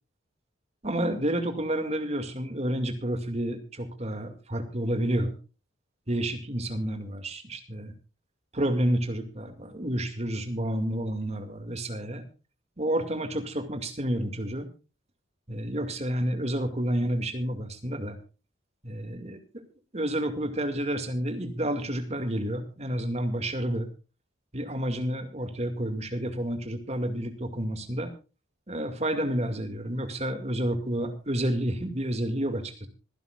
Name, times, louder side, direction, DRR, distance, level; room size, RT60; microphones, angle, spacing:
voice 1, 0.8-5.3 6.1-7.9 8.5-12.2 12.8-14.7 15.5-18.2 18.8-19.6 19.9-23.9 24.5-28.1 28.7-32.9, right 1 dB, 35° right, 7 dB, 2.2 m, -30 dB
25.5 x 11.0 x 2.4 m, 0.34 s
head